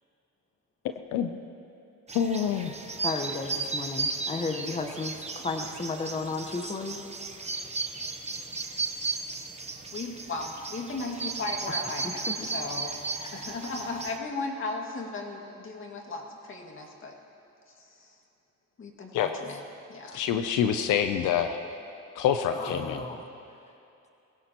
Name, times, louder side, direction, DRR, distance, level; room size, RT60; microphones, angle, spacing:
voice 1, 2.1-2.7 19.1-19.3 20.1-21.6 22.2-23.0, left 8 dB, 85° left, 8 dB, 0.6 m, -26 dB
sound 1, 2.1-14.2, right 4 dB, 20° right, 0.9 m, -35 dB
voice 2, 3.0-7.0 11.7-11.8 13.2-13.5 22.5-23.3, left 3 dB, 25° left, 4 dB, 1.1 m, -34 dB
voice 3, 9.9-13.0 13.3-17.2 17.8-18.2 18.8-19.6 19.9-20.3, left 3 dB, 45° left, 1 dB, 2.1 m, -36 dB
21.5 x 16.5 x 3.0 m, 2.7 s
cardioid pair, 90°, 30 cm